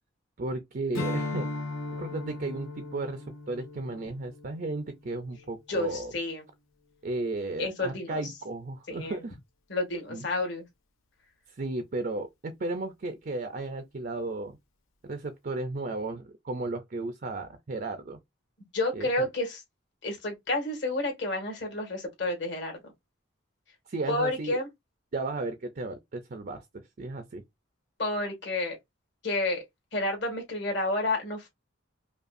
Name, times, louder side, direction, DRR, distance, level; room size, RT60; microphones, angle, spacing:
voice 1, 0.4-1.5 2.0-6.1 7.0-9.4 10.1-10.3 11.5-14.6 15.1-18.2 18.9-19.1 23.9-24.6 25.1-26.6 27.0-27.4, right 2 dB, 45° right, 0.5 m, -34 dB
Strum, 0.9-5.6, left 2 dB, 90° left, 1.0 m, -37 dB
voice 2, 5.7-6.4 7.6-8.2 8.9-9.1 9.7-10.7 18.7-19.6 20.0-22.8 24.1-24.7 28.0-28.8 29.2-29.6 29.9-31.5, left 2 dB, 60° left, 1.8 m, -30 dB
5.1 x 2.4 x 2.5 m
head